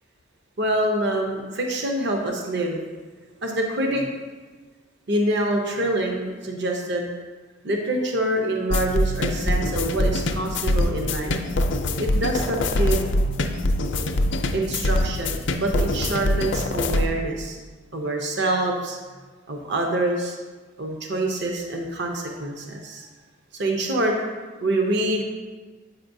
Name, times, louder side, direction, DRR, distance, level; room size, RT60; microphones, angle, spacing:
voice 1, 0.6-2.8 3.4-4.1 5.1-7.1 7.6-11.4 12.0-13.1 14.5-17.6 17.9-19.0 19.5-20.4 20.8-23.1 23.5-24.2 24.6-25.2, right 1 dB, 60° right, 2 dB, 0.7 m, -25 dB
sound 1, 8.7-17.1, left 1 dB, 65° left, 0.4 m, -24 dB
7.7 x 5.8 x 2.6 m, 1.3 s
head